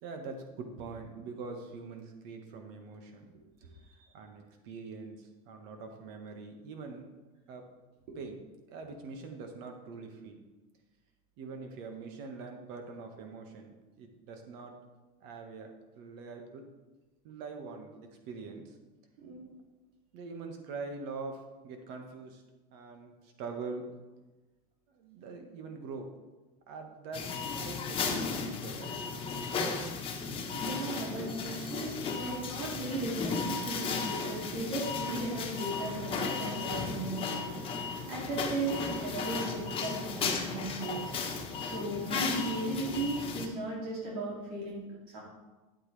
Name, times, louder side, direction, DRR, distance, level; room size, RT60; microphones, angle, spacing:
voice 1, 0.0-3.3 3.6-7.1 7.5-7.7 8.2-8.4 8.7-10.4 11.4-14.8 15.2-16.7 17.2-18.8 20.1-22.4 22.7-23.9 24.9-26.1 26.7-27.3 27.6-29.2, right 4 dB, 60° right, 4 dB, 1.7 m, -44 dB
voice 2, 19.2-19.5 30.5-45.2, right 2 dB, 80° right, -5 dB, 3.0 m, -37 dB
sound 1, 27.1-43.5, left 4 dB, 30° left, 1.4 m, -35 dB
10.5 x 8.5 x 3.4 m, 1.2 s
supercardioid pair, 125°, 18 cm